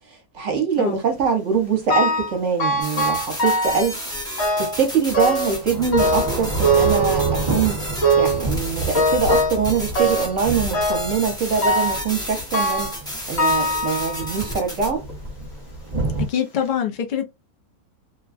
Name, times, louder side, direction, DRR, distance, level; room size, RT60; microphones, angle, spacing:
voice 1, 0.3-4.0 4.6-7.8 8.2-12.9 13.3-15.0, right 6 dB, 60° right, 1.1 m, -23 dB
Thunder / Rain, 1.5-1.6 4.6-16.3, right 2 dB, 25° right, 0.9 m, -30 dB
sound 1, 1.9-2.3 2.6-3.9 4.4-4.8 5.1-5.6 5.9-7.6 8.0-8.5 8.9-9.6 10.0-10.4 10.7-11.2 11.6-12.1 12.5-13.0 13.4-14.4 15.1-15.2 16.0-16.1 16.5-16.6, right 1 dB, 55° left, 0.9 m, -22 dB
sound 2, 2.8-14.9, equal, 5° left, 0.8 m, -33 dB
voice 2, 16.3-17.3, left 8 dB, 85° left, 0.4 m, -24 dB
2.9 x 2.2 x 2.4 m
omnidirectional pair, 1.6 m